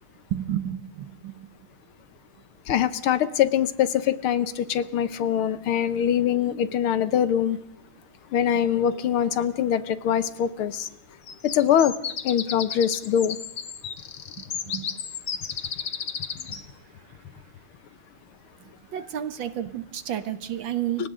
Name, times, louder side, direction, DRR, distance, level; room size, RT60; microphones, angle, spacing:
voice 1, 0.3-1.5 14.6-14.9 16.5-16.6 18.6-21.1, right 11 dB, 65° right, 10 dB, 1.8 m, -31 dB
voice 2, 2.7-7.6 8.3-10.9 11.4-12.0 12.2-13.4 21.0-21.1, left 9 dB, 75° left, 13 dB, 1.8 m, -23 dB
sound 1, 11.3-16.7, left 7 dB, 50° left, 1.5 m, -33 dB
29.5 x 24.5 x 3.8 m, 0.73 s
omnidirectional pair, 2.4 m